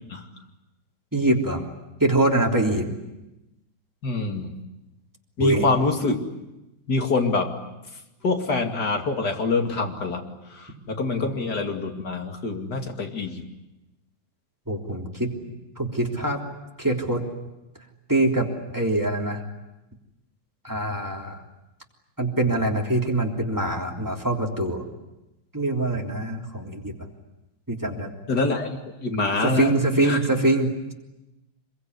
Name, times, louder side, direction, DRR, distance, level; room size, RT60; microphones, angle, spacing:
voice 1, 1.1-1.6 2.0-2.9 5.4-5.7 11.2-11.3 14.7-15.3 15.8-16.4 16.8-17.2 18.1-19.4 20.6-21.4 22.2-24.8 25.5-26.9 27.7-28.1 29.4-30.7, right 2 dB, 10° right, 0 dB, 3.3 m, -24 dB
voice 2, 4.0-4.5 5.4-6.2 6.9-7.5 8.2-10.2 10.5-13.4 28.3-30.2, left 3 dB, 55° left, 3 dB, 3.1 m, -25 dB
25.5 x 23.0 x 9.6 m, 0.97 s
omnidirectional pair, 2.1 m